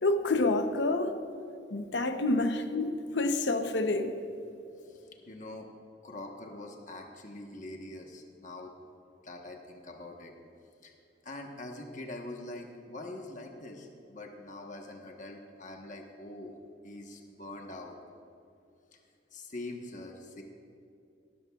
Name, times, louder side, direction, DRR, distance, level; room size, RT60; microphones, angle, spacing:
voice 1, 0.0-1.1 1.7-4.2, left 2 dB, 75° left, 0.7 m, -28 dB
voice 2, 4.8-5.7 6.0-8.7 9.2-10.3 10.8-10.9 11.2-16.5 16.8-18.0 18.9-19.0 19.3-20.4, left 2 dB, 45° left, 1.1 m, -44 dB
19.0 x 12.5 x 2.4 m
head